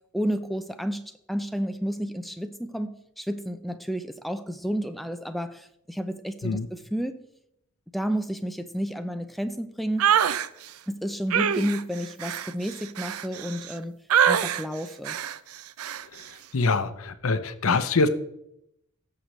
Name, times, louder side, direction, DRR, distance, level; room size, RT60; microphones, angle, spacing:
voice 1, 0.1-1.0 1.3-7.2 7.9-10.1 10.9-14.0 14.3-15.2, equal, ahead, 9 dB, 0.5 m, -31 dB
sound 1, 10.0-10.5 11.3-13.7 14.1-14.6 15.1-15.4 15.8-16.0, right 8 dB, 85° right, 0.5 m, -24 dB
voice 2, 16.5-18.1, left 3 dB, 70° left, 12 dB, 0.7 m, -24 dB
16.0 x 6.6 x 3.2 m, 0.78 s
head